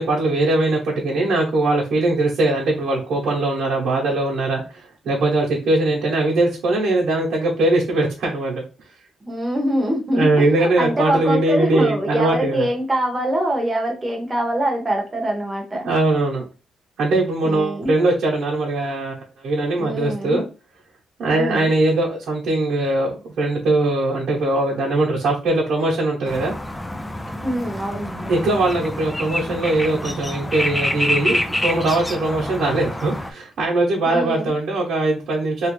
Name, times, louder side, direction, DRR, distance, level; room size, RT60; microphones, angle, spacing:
voice 1, 0.0-8.6 10.1-12.7 15.8-16.4 17.0-20.4 21.2-26.5 28.3-35.7, right 2 dB, 65° right, 1.0 m, -21 dB
voice 2, 9.2-10.3 10.6-15.9 17.4-17.9 19.8-20.4 21.3-21.7 27.4-28.3 34.0-34.5, right 1 dB, 20° right, 0.9 m, -24 dB
sound 1, 26.3-33.3, left 1 dB, 10° left, 0.4 m, -27 dB
3.1 x 2.5 x 3.1 m
cardioid pair, 145°, 0 cm